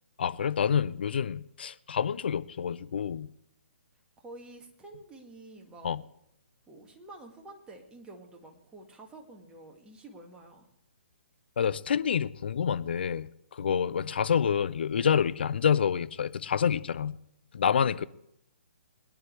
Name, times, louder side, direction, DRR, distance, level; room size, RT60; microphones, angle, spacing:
voice 1, 0.2-3.3 5.8-6.0 11.6-17.2 17.5-18.0, left 7 dB, 55° left, 0.6 m, -28 dB
voice 2, 4.2-6.0 6.7-10.7 13.6-14.2 17.6-18.1, right 2 dB, 10° right, 2.0 m, -49 dB
22.0 x 10.5 x 3.3 m
figure-of-eight pair, 130°, 7 cm